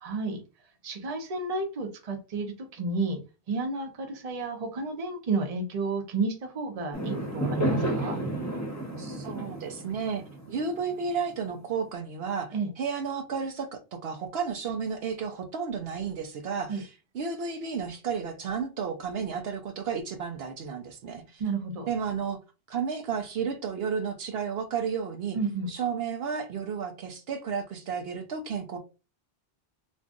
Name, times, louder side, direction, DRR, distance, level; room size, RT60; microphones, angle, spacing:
voice 1, 0.0-0.4 0.8-3.2 3.5-8.2 12.5-12.7 16.7-16.8 21.4-21.9 25.3-25.7, right 3 dB, 40° right, 0.7 m, -31 dB
Fireworks, 6.9-11.4, right 1 dB, 20° left, 0.7 m, -31 dB
voice 2, 9.0-16.9 17.1-21.4 21.9-22.4 22.7-25.4 25.7-28.8, right 6 dB, 70° right, 0.8 m, -32 dB
2.5 x 2.4 x 3.5 m
omnidirectional pair, 1.1 m